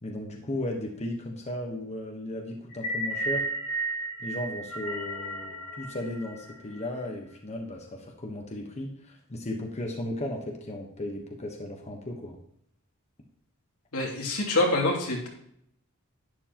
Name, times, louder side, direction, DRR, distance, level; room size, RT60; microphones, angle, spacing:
voice 1, 0.0-3.5 4.2-12.4, left 1 dB, 30° left, 1 dB, 1.1 m, -35 dB
sound 1, 2.7-7.0, right 1 dB, 65° left, 2.3 m, -33 dB
voice 2, 13.9-15.3, left 2 dB, 85° left, -2 dB, 2.7 m, -26 dB
11.0 x 9.9 x 3.0 m, 0.70 s
head